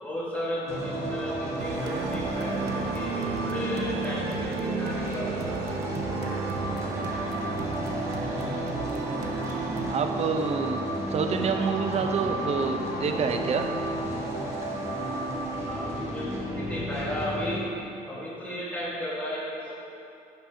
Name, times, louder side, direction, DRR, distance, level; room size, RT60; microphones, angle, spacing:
voice 1, 0.0-5.5 13.0-13.2 15.7-17.7 18.1-19.7, left 1 dB, 10° left, -6 dB, 1.6 m, -34 dB
sound 1, 0.7-17.6, right 1 dB, 15° right, 1.6 m, -32 dB
sound 2, 1.6-9.9, right 6 dB, 85° right, 0.7 m, -34 dB
voice 2, 9.9-10.8 11.1-13.7, right 5 dB, 40° right, 5 dB, 0.6 m, -27 dB
6.0 x 5.3 x 5.6 m, 2.7 s
cardioid pair, 110°, 17 cm